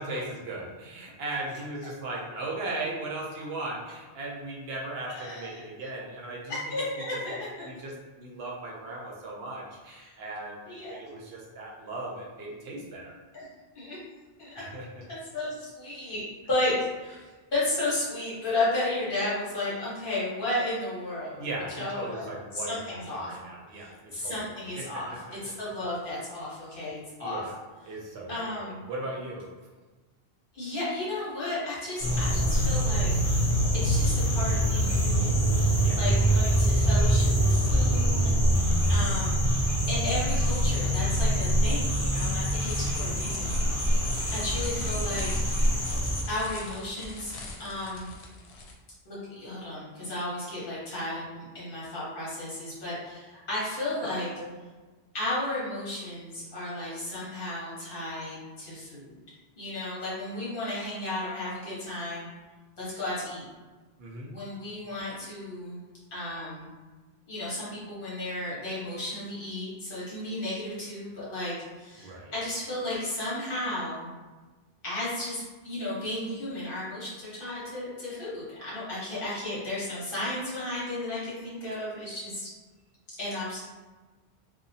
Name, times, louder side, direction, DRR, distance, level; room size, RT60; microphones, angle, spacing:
voice 1, 0.0-6.6 7.6-13.2 14.6-14.9 21.4-24.4 24.8-24.9 27.2-27.6 27.9-29.5 35.8-36.1 43.9-44.2 54.0-54.5 64.0-64.3 72.0-72.3, right 2 dB, 80° right, -2 dB, 0.8 m, -37 dB
voice 2, 5.1-5.9 6.5-7.5 10.0-10.1 10.7-11.0 13.3-13.5 13.7-14.0 14.4-14.7 15.1-21.4 21.8-23.4 23.7-27.4 28.3-28.8 30.5-33.1 33.8-38.6 38.9-39.4 39.9-43.6 44.3-45.4 46.3-47.3 47.6-48.1 49.0-54.3 55.1-59.1 59.6-62.3 62.8-63.5 64.3-65.8 66.1-66.7 67.3-74.1 74.8-82.5 83.2-83.6, left 1 dB, 60° left, -8 dB, 1.2 m, -34 dB
sound 1, 32.0-46.2, right 1 dB, 35° left, 0.7 m, -24 dB
sound 2, 42.2-48.7, left 2 dB, 90° left, 0.8 m, -43 dB
2.8 x 2.2 x 2.6 m, 1.3 s
omnidirectional pair, 1.1 m